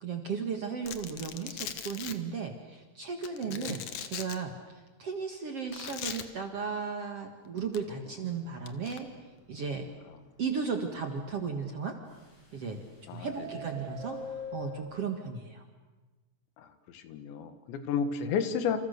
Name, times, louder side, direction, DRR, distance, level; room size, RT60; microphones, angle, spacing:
voice 1, 0.0-9.1 9.5-9.9 10.4-11.9 12.5-12.8 13.1-14.2 14.5-15.6, right 5 dB, 50° right, 4 dB, 1.9 m, -35 dB
Domestic sounds home sounds, 0.8-2.1 3.2-4.4 5.7-6.2 7.6-7.8 8.7-9.0, left 9 dB, 60° left, 1.9 m, -39 dB
Subway metro underground, 8.0-8.1 8.5-8.6 8.9-9.0 9.5-9.6 12.1-12.8 13.1-14.8, left 1 dB, 45° left, 8.8 m, -42 dB
voice 2, 16.9-18.8, left 6 dB, 90° left, 9 dB, 3.9 m, -32 dB
28.5 x 28.5 x 6.7 m, 1.2 s
omnidirectional pair, 5.0 m